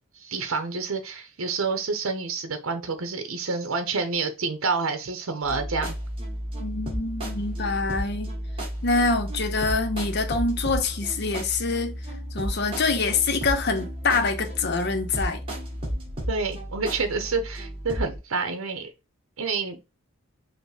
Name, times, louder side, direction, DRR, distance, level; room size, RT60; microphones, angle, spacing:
voice 1, 0.1-6.0 16.3-18.9 19.4-19.8, right 4 dB, 80° right, 0.7 m, -28 dB
sound 1, 5.4-18.2, equal, 25° right, 1.9 m, -33 dB
voice 2, 6.6-8.3 8.8-11.9 12.3-15.4, left 3 dB, 50° left, 0.7 m, -25 dB
5.2 x 2.1 x 4.8 m
head